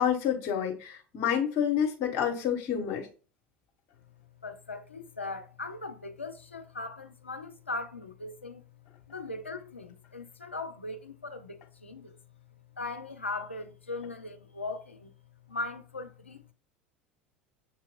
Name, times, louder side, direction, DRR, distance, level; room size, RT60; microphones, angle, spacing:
voice 1, 0.0-3.1, left 8 dB, 50° left, 1.1 m, -28 dB
voice 2, 4.4-8.6 9.1-12.2 12.8-15.1 15.5-16.5, left 2 dB, 85° left, 0.5 m, -39 dB
6.9 x 2.9 x 2.4 m
figure-of-eight pair, 70°, 6 cm